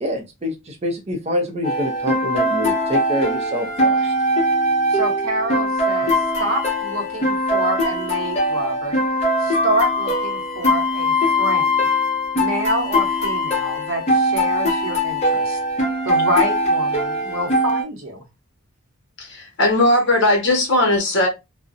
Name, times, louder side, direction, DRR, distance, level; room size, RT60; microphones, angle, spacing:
voice 1, 0.0-4.1, equal, 30° right, 0.5 m, -26 dB
sound 1, 1.6-17.8, left 1 dB, 30° left, 0.6 m, -21 dB
voice 2, 4.9-9.0 9.4-11.9 12.3-15.6 16.0-18.2, right 1 dB, 75° right, 0.8 m, -27 dB
voice 3, 19.2-21.3, left 1 dB, 55° left, 0.9 m, -18 dB
2.5 x 2.0 x 2.5 m
head